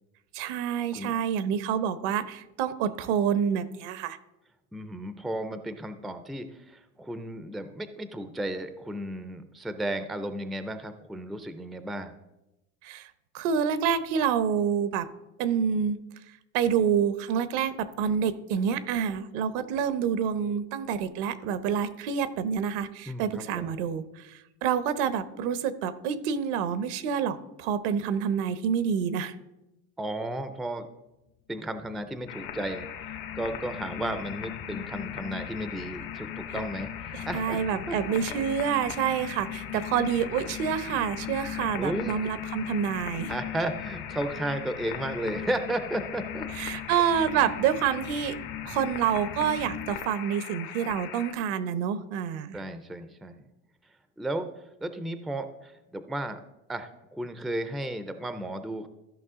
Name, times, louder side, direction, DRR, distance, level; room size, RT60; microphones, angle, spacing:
voice 1, 0.3-4.2 12.8-15.1 15.4-16.0 16.5-29.3 37.1-43.3 46.6-48.3 48.6-52.6, right 8 dB, 80° right, 13 dB, 0.9 m, -28 dB
voice 2, 4.7-12.1 23.1-23.7 30.0-30.9 31.5-32.9 33.3-37.6 37.9-38.0 41.8-42.3 43.3-46.5 52.5-53.4 54.2-54.5 54.8-56.4 56.7-58.9, right 1 dB, ahead, 10 dB, 0.4 m, -34 dB
sound 1, 31.8-50.0, left 11 dB, 60° left, 1.0 m, -40 dB
sound 2, 32.3-51.3, left 9 dB, 85° left, 1.5 m, -40 dB
13.5 x 5.5 x 3.6 m, 0.96 s
cardioid pair, 135°, 34 cm